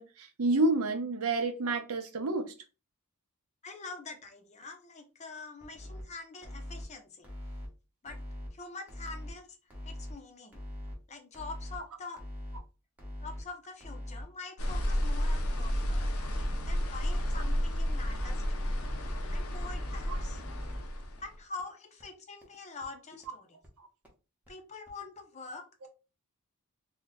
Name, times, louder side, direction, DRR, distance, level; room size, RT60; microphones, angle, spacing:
voice 1, 0.0-2.5 20.1-20.2 25.8-25.9, right 2 dB, 70° right, 0.6 m, -29 dB
voice 2, 3.6-7.3 8.0-8.2 8.5-9.6 9.8-10.6 11.1-12.2 13.2-18.7 19.3-20.4 21.2-23.5 24.5-25.9, left 3 dB, 30° left, 0.6 m, -45 dB
sound 1, 5.6-6.0 6.4-6.8 7.2-7.7 8.1-8.5 8.9-9.3 9.7-10.1 10.5-10.9 11.3-11.8 12.2-12.6 13.0-13.4 13.8-14.2 14.6-15.0 15.4-15.9 16.3-16.7 17.1-17.5 17.9-18.3 18.7-19.2 19.5-20.0 20.4-20.8 21.2-21.3 21.6-21.7 22.0-22.1 22.4-22.5 22.8-22.9 23.2-23.3 23.6-23.7 24.0-24.1 24.5-24.6 24.9-25.0, left 1 dB, 5° right, 0.8 m, -42 dB
sound 2, 14.6-21.3, equal, 75° left, 0.7 m, -32 dB
2.6 x 2.3 x 3.9 m
head